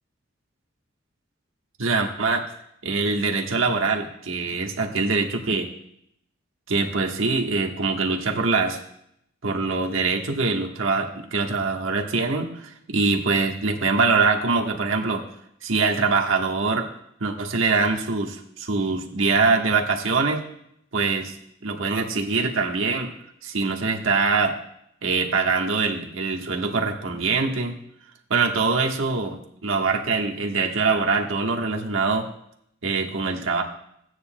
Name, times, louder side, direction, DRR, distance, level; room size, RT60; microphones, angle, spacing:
voice 1, 1.8-2.4 2.8-5.7 6.7-8.8 9.4-15.2 15.6-16.9 17.2-20.4 20.9-21.3 21.6-23.1 23.4-24.6 25.0-27.7 28.3-32.3 32.8-33.6, right 4 dB, 85° right, 3 dB, 1.3 m, -23 dB
15.5 x 9.4 x 2.2 m, 0.73 s
head